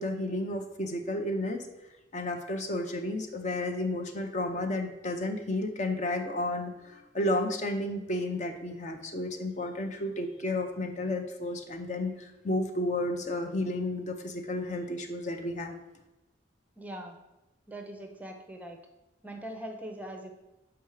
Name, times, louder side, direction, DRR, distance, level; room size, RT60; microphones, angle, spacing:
voice 1, 0.0-1.7 2.1-15.8, left 1 dB, 40° left, 5 dB, 0.6 m, -32 dB
voice 2, 16.8-17.2 17.7-18.8 19.2-20.3, right 1 dB, 10° right, 4 dB, 0.6 m, -41 dB
6.9 x 4.7 x 4.7 m, 0.99 s
head